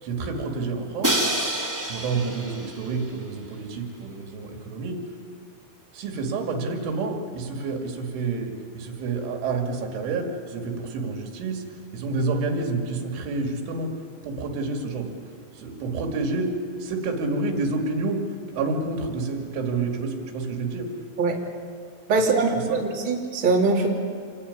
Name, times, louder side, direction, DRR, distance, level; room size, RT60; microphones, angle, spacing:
voice 1, 0.0-1.3 1.9-5.0 5.9-11.6 11.9-13.9 14.2-15.1 15.5-16.5 16.8-18.2 18.5-20.9 22.3-22.8, right 3 dB, 75° right, 3 dB, 5.0 m, -29 dB
Crash cymbal, 1.0-3.0, right 1 dB, 10° right, 1.2 m, -27 dB
voice 2, 22.1-23.9, right 3 dB, 30° right, -2 dB, 3.5 m, -22 dB
27.5 x 22.5 x 9.8 m, 2.1 s
omnidirectional pair, 5.6 m